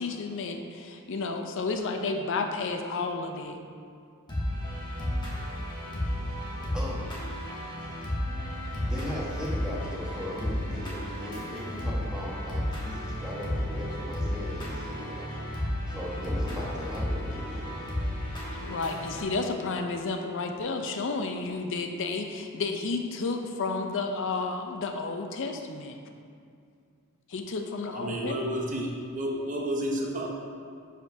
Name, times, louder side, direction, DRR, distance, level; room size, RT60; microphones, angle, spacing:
voice 1, 0.0-3.6 18.6-26.0 27.3-28.4, left 3 dB, 60° left, 5 dB, 0.5 m, -31 dB
sound 1, 4.3-19.2, left 1 dB, 20° left, 1.2 m, -33 dB
voice 2, 8.8-15.3 15.9-17.7, equal, 5° right, -6 dB, 1.3 m, -38 dB
voice 3, 27.9-30.3, right 1 dB, 35° right, -1 dB, 0.8 m, -31 dB
9.9 x 5.0 x 2.7 m, 2.3 s
head